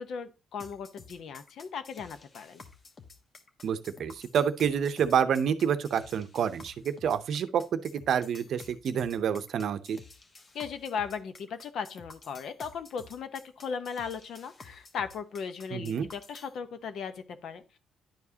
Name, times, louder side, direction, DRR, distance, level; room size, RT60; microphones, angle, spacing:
voice 1, 0.0-2.6 10.5-17.8, left 6 dB, 70° left, 0.8 m, -37 dB
sound 1, 0.6-16.5, left 4 dB, 40° left, 1.1 m, -51 dB
voice 2, 3.6-10.0 15.7-16.1, right 8 dB, 65° right, 0.6 m, -28 dB
10.5 x 4.8 x 2.8 m
cardioid pair, 90°, 0 cm